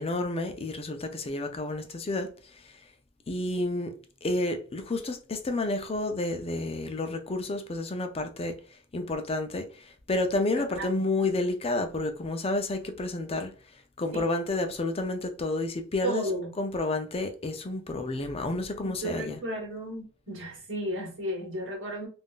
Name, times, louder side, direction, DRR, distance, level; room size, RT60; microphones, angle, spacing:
voice 1, 0.0-2.8 3.3-3.9 4.2-8.6 8.9-13.5 14.0-19.4, left 2 dB, 30° left, 0.5 m, -30 dB
voice 2, 10.5-10.9 14.1-14.3 16.0-16.5 18.8-22.1, right 1 dB, 70° right, 1.5 m, -34 dB
3.7 x 2.5 x 2.3 m
head